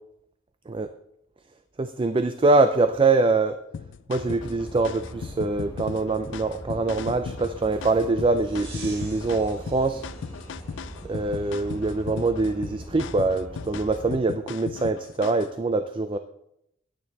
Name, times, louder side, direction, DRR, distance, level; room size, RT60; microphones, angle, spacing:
voice 1, 1.8-3.6 4.1-10.0 11.0-16.2, right 3 dB, 25° right, 9 dB, 0.4 m, -24 dB
sound 1, 3.7-15.5, left 6 dB, 60° left, 0.4 m, -38 dB
sound 2, 4.1-14.2, right 1 dB, 10° left, 1.9 m, -41 dB
sound 3, 8.4-12.8, right 2 dB, 75° right, 4.0 m, -47 dB
10.0 x 9.3 x 4.2 m, 0.78 s
head